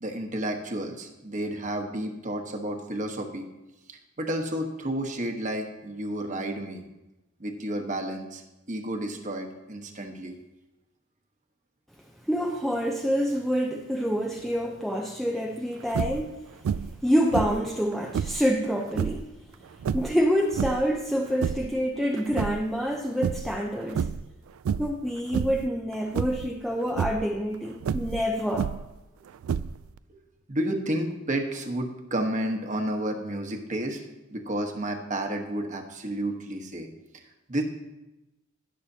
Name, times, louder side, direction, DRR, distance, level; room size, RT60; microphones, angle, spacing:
voice 1, 0.0-3.5 3.9-6.8 7.4-8.4 8.7-10.3 30.1-30.2 30.5-34.0 34.3-36.9 37.5-37.6, right 1 dB, 35° right, 3 dB, 1.2 m, -31 dB
voice 2, 12.3-16.4 17.0-19.2 19.9-24.1 24.8-28.7, equal, ahead, -1 dB, 0.6 m, -27 dB
sound 1, 15.9-16.3 16.7-17.0 17.3-18.5 18.9-19.3 19.8-20.9 21.3-21.8 22.2-22.9 23.2-23.6 23.9-24.3 24.7-25.0 25.3-25.7 26.1-26.5 26.9-27.2 27.8-29.0 29.4-30.0, right 7 dB, 80° right, 0.3 m, -30 dB
18.0 x 6.6 x 2.8 m, 0.97 s
head